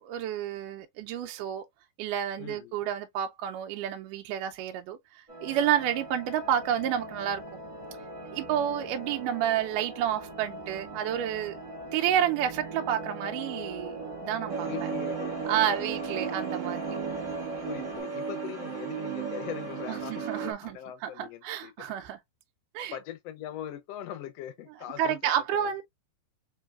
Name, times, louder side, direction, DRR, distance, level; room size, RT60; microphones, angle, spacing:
voice 1, 0.0-1.6 2.0-7.4 8.3-11.6 11.9-14.7 15.5-16.8 19.9-20.8 21.0-22.2 22.7-22.9 25.0-25.8, right 10 dB, 80° right, 2.0 m, -30 dB
voice 2, 2.4-2.8 14.6-15.4 15.7-15.8 17.6-21.7 22.9-25.2 25.5-25.8, left 11 dB, 75° left, 1.5 m, -41 dB
sound 1, 5.3-18.0, right 2 dB, 25° right, 0.6 m, -40 dB
sound 2, 14.5-20.5, right 6 dB, 50° right, 1.2 m, -35 dB
4.6 x 3.7 x 2.3 m
omnidirectional pair, 4.0 m